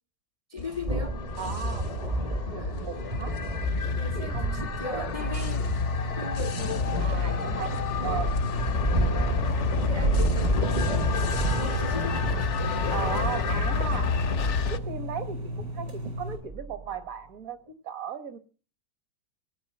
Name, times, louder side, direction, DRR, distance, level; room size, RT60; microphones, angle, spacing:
voice 1, 0.5-1.2 2.6-2.9 3.5-5.7 6.2-7.5 8.0-8.2 9.8-12.5, left 2 dB, 30° left, 0.6 m, -38 dB
sound 1, 0.6-14.8, left 5 dB, 50° left, 1.0 m, -30 dB
sound 2, 0.9-17.0, right 2 dB, 25° right, 0.9 m, -32 dB
voice 2, 1.4-1.9 2.5-3.3 4.1-5.2 7.0-7.7 8.0-8.3 12.9-14.1 14.7-18.4, right 7 dB, 55° right, 1.6 m, -36 dB
sound 3, 5.2-16.4, equal, 80° right, 6.1 m, -35 dB
17.5 x 10.0 x 7.7 m
omnidirectional pair, 1.9 m